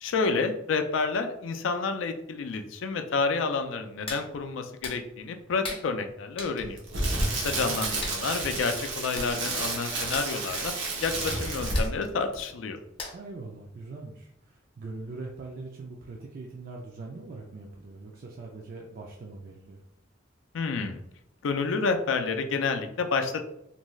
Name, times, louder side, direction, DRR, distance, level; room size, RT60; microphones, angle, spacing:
voice 1, 0.0-6.8 7.3-10.7 11.0-12.8 20.5-21.0 21.4-23.5, left 4 dB, 85° left, 7 dB, 0.4 m, -29 dB
Hands, 4.1-4.3 4.8-5.0 5.6-5.9 6.4-6.6 8.0-8.2 8.9-9.0 9.1-9.3 9.6-9.8 10.1-10.3 11.7-11.9 13.0-13.3 13.8-13.9, left 3 dB, 30° left, 0.5 m, -37 dB
Crackle, 6.6-12.1 12.3-12.5, right 2 dB, 90° right, 0.8 m, -30 dB
voice 2, 7.3-7.8 13.1-19.8, right 3 dB, 50° right, -1 dB, 0.4 m, -42 dB
2.6 x 2.3 x 3.1 m, 0.81 s
head